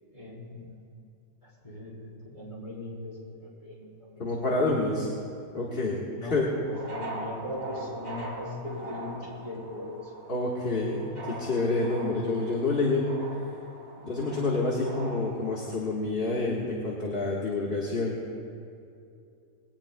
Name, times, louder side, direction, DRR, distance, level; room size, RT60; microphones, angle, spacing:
voice 1, 0.1-0.9 1.6-4.6 6.1-10.1, left 2 dB, 20° left, -5 dB, 3.9 m, -40 dB
voice 2, 4.2-5.1 5.5-6.0 6.3-6.5 10.3-13.1 14.0-18.2, left 2 dB, 40° left, -4 dB, 1.6 m, -28 dB
sound 1, 6.7-15.7, right 2 dB, 45° right, 2.7 m, -42 dB
21.0 x 18.0 x 2.2 m, 2.5 s
omnidirectional pair, 1.6 m